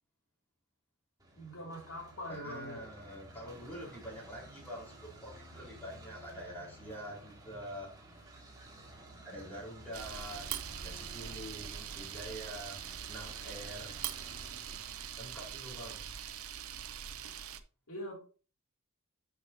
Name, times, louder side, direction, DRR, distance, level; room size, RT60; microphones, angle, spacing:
sound 1, 1.2-15.5, right 1 dB, 20° right, 2.5 m, -54 dB
voice 1, 1.4-2.9 10.0-10.2 17.9-18.2, equal, 75° left, -1 dB, 2.8 m, -43 dB
voice 2, 2.3-7.9 9.2-10.5 10.8-12.8 13.1-13.9 15.2-16.1, equal, 10° left, -4 dB, 4.4 m, -46 dB
Camera, 9.9-17.6, right 9 dB, 75° right, 0.7 m, -42 dB
11.5 x 6.0 x 2.8 m, 0.36 s
head